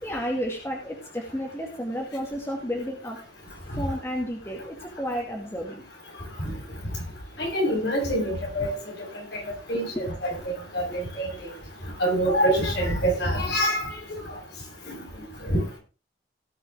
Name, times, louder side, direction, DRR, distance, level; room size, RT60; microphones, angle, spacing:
voice 1, 0.0-3.2 3.7-5.9 9.7-10.0 10.8-11.0, equal, 15° left, -1 dB, 2.3 m, -32 dB
voice 2, 7.4-8.7 9.3-9.4 9.7-11.3 12.0-13.9 14.9-15.0 15.5-15.6, right 1 dB, 70° left, -1 dB, 7.1 m, -25 dB
18.0 x 6.9 x 3.7 m, 0.33 s
head